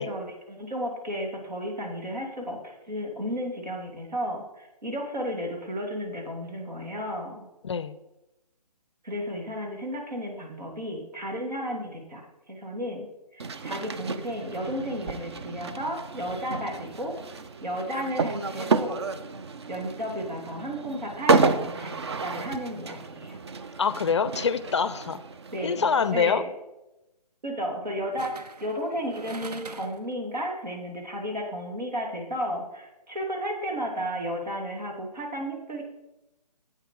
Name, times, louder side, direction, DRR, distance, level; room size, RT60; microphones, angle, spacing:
voice 1, 0.0-7.5 9.0-12.2 12.5-13.1 13.3-17.1 17.6-19.1 19.7-23.4 25.5-26.5 27.4-35.8, equal, 90° right, 1 dB, 2.5 m, -33 dB
voice 2, 7.6-8.0 23.8-25.2 25.6-26.4, left 6 dB, 45° left, 15 dB, 0.4 m, -25 dB
sound 1, 13.4-26.3, right 4 dB, 40° right, 0.4 m, -30 dB
sound 2, 25.5-25.8 28.2-30.1 30.5-30.6, right 4 dB, 70° right, 0.8 m, -43 dB
8.1 x 7.0 x 4.6 m, 0.96 s
hypercardioid pair, 160°, 21 cm